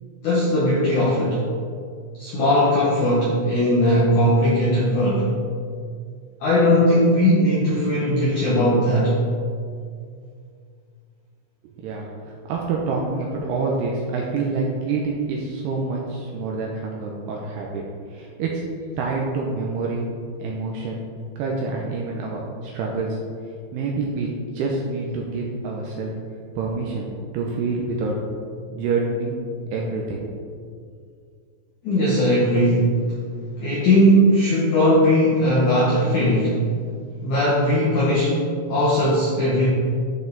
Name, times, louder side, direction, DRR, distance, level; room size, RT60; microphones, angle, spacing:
voice 1, 0.2-1.5 2.2-5.3 6.4-9.2 31.8-32.9 33.6-36.6 37.2-39.7, equal, 80° left, -6 dB, 1.7 m, -19 dB
voice 2, 11.6-17.8 18.1-18.6 19.0-20.1 20.4-21.0 21.4-23.2 23.7-26.1 26.6-28.2 28.7-29.4 29.7-30.3, right 3 dB, 80° right, -2 dB, 2.5 m, -27 dB
11.5 x 5.8 x 3.9 m, 2.2 s
omnidirectional pair, 5.5 m